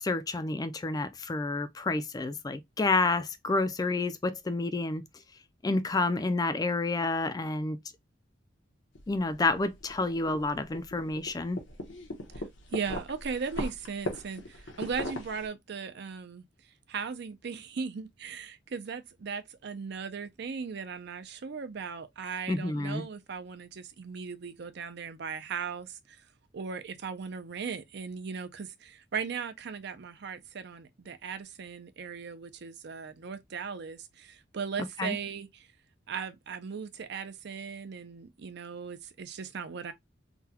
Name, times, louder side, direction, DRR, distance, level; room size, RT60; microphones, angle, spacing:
voice 1, 0.0-5.0 5.6-7.8 9.1-11.6 22.5-23.0 35.0-35.2, left 3 dB, 20° left, 0.3 m, -29 dB
sound 1, 8.9-15.5, left 1 dB, 90° left, 1.0 m, -40 dB
voice 2, 12.7-16.4 16.9-26.2 26.5-35.7 36.1-39.9, right 6 dB, 60° right, 0.5 m, -38 dB
3.8 x 2.2 x 2.7 m
head